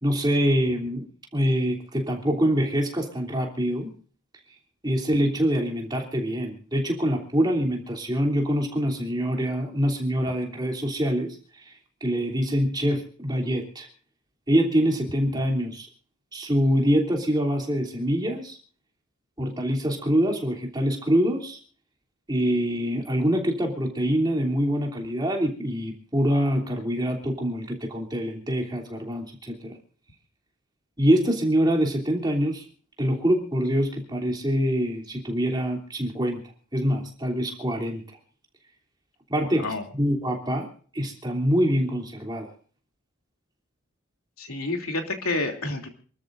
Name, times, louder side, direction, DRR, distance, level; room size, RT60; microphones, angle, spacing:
voice 1, 0.0-1.1 1.3-3.9 4.8-11.7 12.0-13.9 14.5-15.9 16.3-18.6 19.4-21.6 22.3-29.8 31.0-32.6 33.0-36.4 36.7-38.0 39.3-39.6 40.0-40.7 40.9-42.5, equal, 20° right, 1 dB, 3.1 m, -25 dB
voice 2, 44.4-45.9, left 2 dB, 85° left, 3 dB, 3.0 m, -29 dB
28.0 x 13.0 x 2.6 m, 0.43 s
head